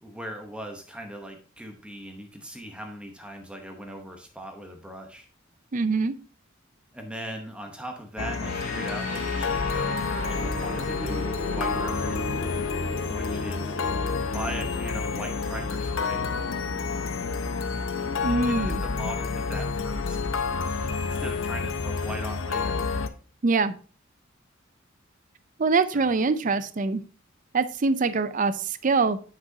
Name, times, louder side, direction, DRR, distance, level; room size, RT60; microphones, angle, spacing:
voice 1, 0.0-5.3 6.9-12.1 13.1-13.8 14.2-16.3 18.4-20.3 21.0-22.8 25.9-26.1, right 1 dB, 5° right, 3 dB, 0.9 m, -39 dB
voice 2, 5.7-6.2 18.2-18.8 23.4-23.7 25.6-27.0 27.5-29.2, right 4 dB, 40° right, 13 dB, 0.5 m, -24 dB
sound 1, 8.2-23.1, left 4 dB, 75° left, 0.6 m, -29 dB
sound 2, 8.4-19.3, equal, 40° left, 2.2 m, -38 dB
7.8 x 6.1 x 2.7 m, 0.38 s
head